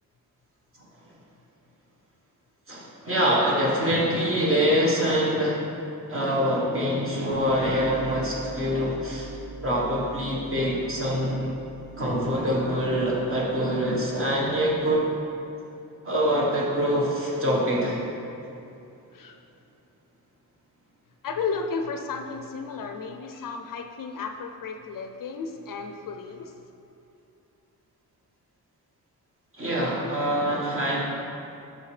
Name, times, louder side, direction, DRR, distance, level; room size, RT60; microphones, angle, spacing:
voice 1, 2.7-5.7 6.1-9.3 9.6-11.6 12.0-15.0 16.0-18.0 29.6-31.0, equal, 35° right, -5 dB, 1.3 m, -25 dB
sound 1, 7.3-14.9, right 3 dB, 60° right, 1.2 m, -44 dB
voice 2, 21.2-26.5, left 5 dB, 60° left, 5 dB, 0.4 m, -33 dB
8.4 x 6.4 x 3.2 m, 2.8 s
wide cardioid pair, 180°, 39 cm